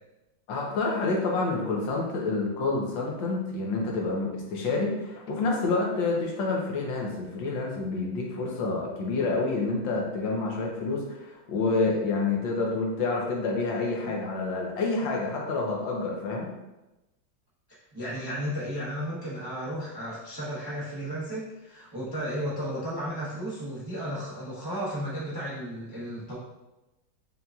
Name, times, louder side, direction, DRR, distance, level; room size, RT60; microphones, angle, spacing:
voice 1, 0.5-16.5, left 3 dB, 70° left, -1 dB, 1.5 m, -28 dB
voice 2, 17.9-26.4, equal, 40° right, -9 dB, 0.3 m, -34 dB
5.6 x 2.6 x 2.3 m, 1.0 s
omnidirectional pair, 2.2 m